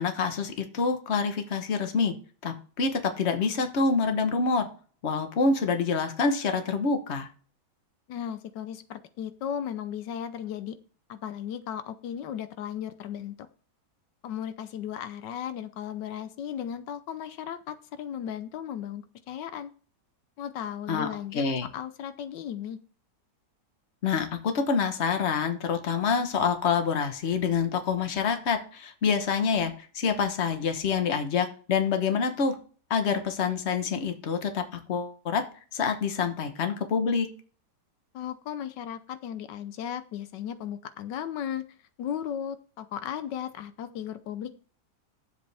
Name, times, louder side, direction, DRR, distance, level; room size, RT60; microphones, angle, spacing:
voice 1, 0.0-2.1 2.4-4.7 5.0-7.3 20.9-21.7 24.0-32.6 32.9-34.6 34.9-35.4 35.7-37.3, left 5 dB, 40° left, 7 dB, 1.3 m, -27 dB
voice 2, 8.1-10.7 11.1-13.3 14.2-19.7 20.4-21.5 21.7-22.8 38.1-41.7 42.0-44.5, left 9 dB, 85° left, 11 dB, 1.4 m, -36 dB
9.9 x 7.6 x 3.4 m, 0.40 s
omnidirectional pair, 1.9 m